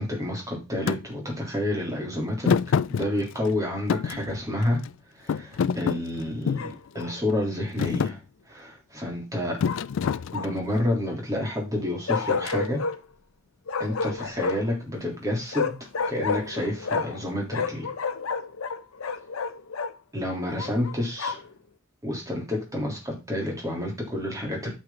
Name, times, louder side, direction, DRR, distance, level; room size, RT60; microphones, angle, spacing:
voice 1, 0.0-2.6 2.9-4.8 5.1-6.6 6.9-8.2 8.5-9.6 10.3-12.8 13.8-15.7 16.1-17.9 20.1-21.4 22.0-24.7, left 1 dB, 15° right, 3.2 m, -29 dB
Thump thud, 0.9-1.0 2.5-3.5 3.9-4.9 5.3-6.7 7.3-7.5 7.8-8.2 9.6-10.7, left 6 dB, 65° left, 0.3 m, -26 dB
Bark, 6.5-7.2 9.6-10.7 12.1-13.0 13.7-14.8 15.5-17.2 17.5-19.9 20.6-21.5, left 5 dB, 85° left, 0.8 m, -30 dB
8.8 x 6.6 x 3.8 m
head